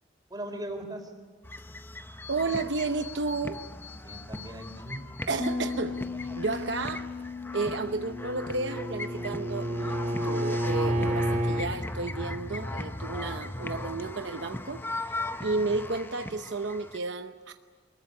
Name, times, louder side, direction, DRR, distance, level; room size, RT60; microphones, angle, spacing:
voice 1, 0.3-1.1 4.0-5.0 5.9-6.4, right 1 dB, 20° right, 4 dB, 4.2 m, -39 dB
sound 1, 1.4-17.0, left 2 dB, 10° left, 0.7 m, -38 dB
voice 2, 2.3-3.6 5.3-6.0 6.4-7.1 7.5-17.5, right 3 dB, 75° right, 7 dB, 0.9 m, -32 dB
Bass guitar, 5.4-14.7, left 4 dB, 40° left, 2.9 m, -40 dB
Bowed string instrument, 7.9-11.7, right 1 dB, 45° right, 1.9 m, -30 dB
24.0 x 21.0 x 9.8 m, 1.4 s
head